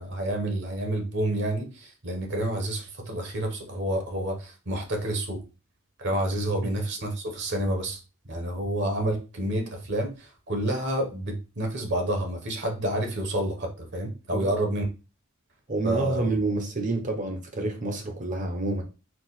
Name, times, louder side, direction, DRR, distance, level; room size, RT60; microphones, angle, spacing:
voice 1, 0.0-5.4 6.0-8.0 8.3-14.8 15.8-16.2, right 1 dB, 50° right, 1.1 m, -29 dB
voice 2, 15.7-18.8, right 2 dB, 35° right, 0.9 m, -28 dB
4.6 x 2.4 x 4.1 m
head